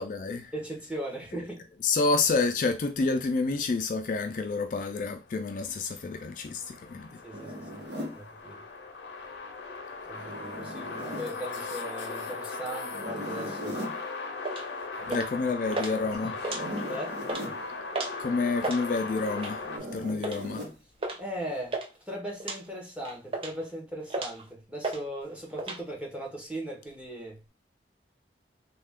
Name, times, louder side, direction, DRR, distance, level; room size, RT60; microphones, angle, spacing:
voice 1, 0.0-0.5 1.8-7.2 15.1-16.3 18.2-19.7 19.9-20.7, left 3 dB, 45° left, 0.3 m, -29 dB
voice 2, 0.5-1.6 7.2-7.8 8.1-8.6 10.1-13.8 15.0-15.3 15.7-15.8 16.3-16.4 16.9-17.2 21.2-21.8 22.1-27.4, right 1 dB, 5° right, 0.9 m, -38 dB
sound 1, 4.9-19.8, left 3 dB, 85° left, 0.6 m, -38 dB
Zipper (clothing), 7.3-8.2 10.1-11.3 12.9-14.0 16.4-17.6 19.6-20.8, equal, 80° right, 1.1 m, -38 dB
sound 2, 14.4-14.7 15.1-15.4 15.7-15.9 16.3-16.9 17.2-17.4 17.9-18.2 18.5-18.8 19.4-19.6 20.2-20.4 21.0-21.2 21.5-21.9 22.4-22.6 23.0-23.6 24.1-24.4 24.8-25.0 25.3-25.8, right 2 dB, 30° right, 0.4 m, -33 dB
3.3 x 2.3 x 3.5 m
head